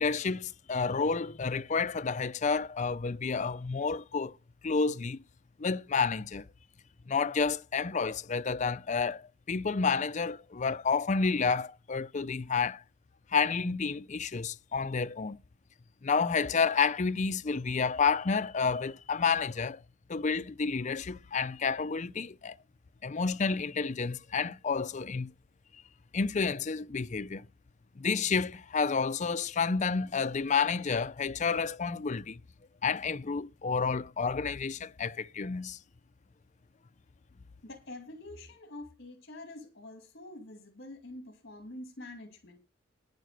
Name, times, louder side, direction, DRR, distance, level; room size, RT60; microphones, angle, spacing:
voice 1, 0.0-4.3 4.6-5.2 5.6-6.4 7.1-9.2 9.5-12.8 13.3-15.4 16.0-19.8 20.1-22.5 23.0-25.3 26.1-27.4 28.0-32.4 32.8-35.8, left 5 dB, 35° left, 0.5 m, -30 dB
voice 2, 37.6-42.6, left 1 dB, 55° left, 2.6 m, -46 dB
10.0 x 9.3 x 6.7 m
head